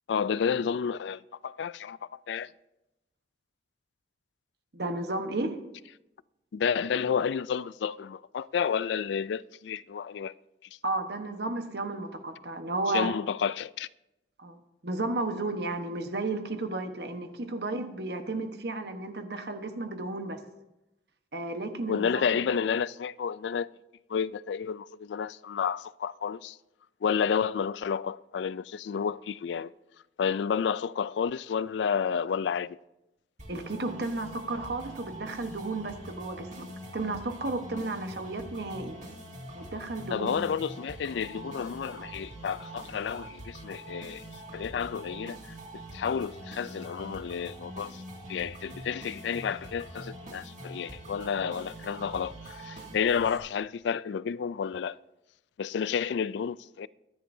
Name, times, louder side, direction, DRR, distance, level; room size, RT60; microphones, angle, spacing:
voice 1, 0.1-2.0 2.3-2.5 6.5-10.3 12.9-13.9 21.9-23.7 24.1-26.6 27.0-29.7 30.2-32.8 40.1-44.2 44.5-45.4 45.9-48.0 48.3-55.0 55.6-56.9, left 7 dB, 80° left, 0.3 m, -30 dB
voice 2, 4.7-5.6 10.8-13.1 14.4-14.6 14.8-20.4 21.3-22.2 33.5-36.7 36.9-39.0 39.5-40.4, right 2 dB, 65° right, 1.2 m, -33 dB
sound 1, 33.4-53.4, right 1 dB, 45° right, 2.2 m, -44 dB
24.0 x 10.5 x 2.7 m
head